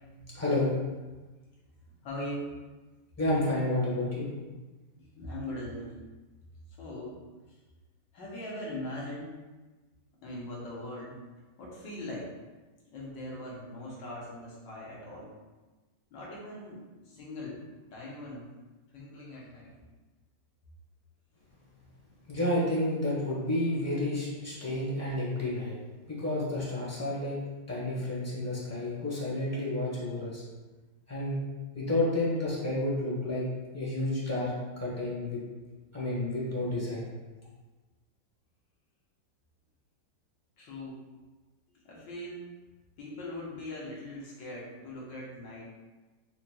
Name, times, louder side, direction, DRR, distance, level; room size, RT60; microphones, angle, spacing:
voice 1, 0.3-0.7 3.2-4.3 22.3-25.7 26.1-27.4 27.7-30.4 31.1-31.4 31.7-33.4 33.7-35.4 35.9-37.1, left 1 dB, 15° left, -7 dB, 0.7 m, -30 dB
voice 2, 1.8-2.5 5.0-6.0 6.7-7.2 7.5-7.6 8.1-9.4 10.2-11.2 11.6-12.3 12.9-15.3 16.1-17.6 17.9-18.5 18.9-19.8 40.6-41.0 41.7-42.5 43.0-45.6, left 1 dB, 85° left, -4 dB, 1.6 m, -41 dB
4.9 x 3.0 x 2.2 m, 1.2 s
omnidirectional pair, 1.9 m